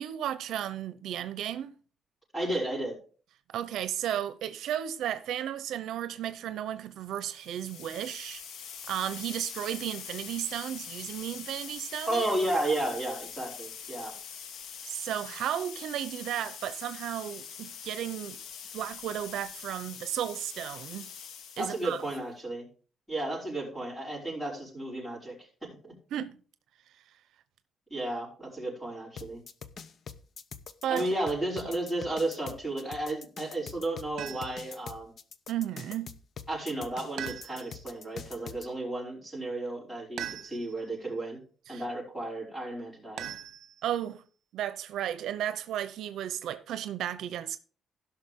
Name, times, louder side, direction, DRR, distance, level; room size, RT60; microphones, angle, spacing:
voice 1, 0.0-1.7 3.5-8.4 8.9-12.2 14.8-18.4 18.7-21.1 21.6-22.0 26.1-26.4 30.8-31.1 35.5-36.1 41.7-41.8 43.8-44.2 44.5-47.6, right 11 dB, 85° right, 0.7 m, -34 dB
voice 2, 2.3-3.0 12.1-14.1 21.6-22.7 23.1-25.9 27.9-29.4 30.9-35.1 36.5-41.4 41.7-43.3, right 1 dB, 5° left, 5.4 m, -33 dB
sound 1, 7.2-22.2, left 7 dB, 85° left, 1.2 m, -44 dB
sound 2, 29.2-38.7, left 6 dB, 45° left, 0.7 m, -44 dB
sound 3, 34.2-34.7 37.2-37.9 40.2-40.9 43.2-44.0, right 10 dB, 65° right, 1.1 m, -40 dB
16.5 x 6.0 x 3.6 m
cardioid pair, 165°, 0 cm